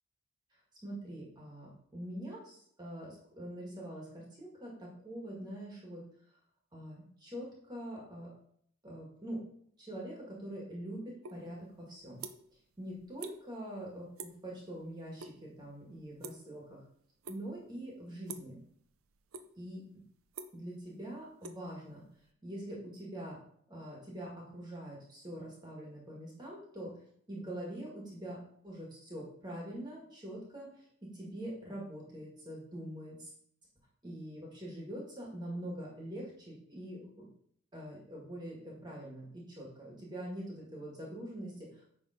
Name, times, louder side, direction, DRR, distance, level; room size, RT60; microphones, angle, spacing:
voice 1, 0.8-6.0 6.7-8.3 8.8-9.4 9.8-12.2 12.8-16.8 17.3-18.6 19.6-19.8 20.5-22.0 22.4-23.4 23.7-26.9 27.3-28.4 28.6-33.3 34.0-37.3 37.7-41.9, right 1 dB, 20° right, -3 dB, 1.8 m, -44 dB
sound 1, 11.2-11.4 11.7-12.6 12.9-13.4 13.7-13.9 14.2-14.5 14.8-15.3 15.6-16.8 17.2-17.7 18.2-18.6 19.0-19.7 20.0-22.2, right 4 dB, 75° right, 0.6 m, -46 dB
9.7 x 3.6 x 5.0 m, 0.66 s
head